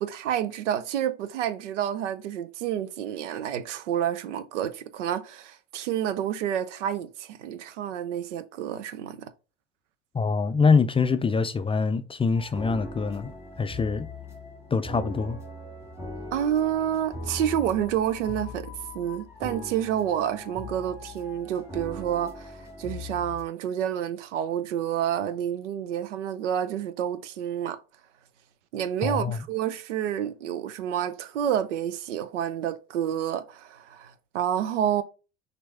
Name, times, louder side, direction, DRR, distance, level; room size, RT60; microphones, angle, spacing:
voice 1, 0.0-9.2 16.3-18.7 18.9-27.8 28.7-35.0, right 10 dB, 90° right, 0.5 m, -29 dB
voice 2, 10.1-13.3 13.6-14.1 14.7-15.4 29.0-29.4, left 5 dB, 15° left, 0.3 m, -24 dB
sound 1, 12.3-23.4, left 2 dB, 10° right, 1.8 m, -40 dB
6.1 x 2.7 x 3.3 m
hypercardioid pair, 70°, 35 cm